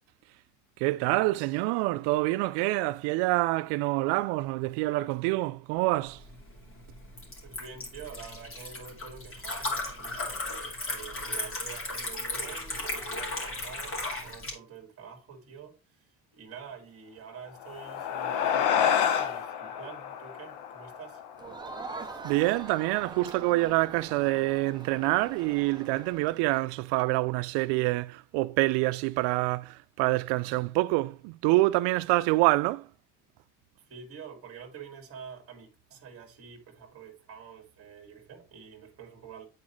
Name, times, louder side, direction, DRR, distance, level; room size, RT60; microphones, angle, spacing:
voice 1, 0.8-6.2 22.2-32.9, right 20 dB, 90° right, 0.5 m, -26 dB
Liquid, 6.1-14.5, left 2 dB, 30° left, 2.5 m, -36 dB
voice 2, 7.4-16.1 16.3-21.2 33.8-39.5, right 6 dB, 35° right, 1.8 m, -47 dB
sound 1, 17.5-22.2, left 8 dB, 70° left, 1.0 m, -29 dB
Crowd, 21.4-26.7, right 3 dB, 10° right, 0.8 m, -43 dB
8.6 x 4.3 x 3.1 m
cardioid pair, 130°, 41 cm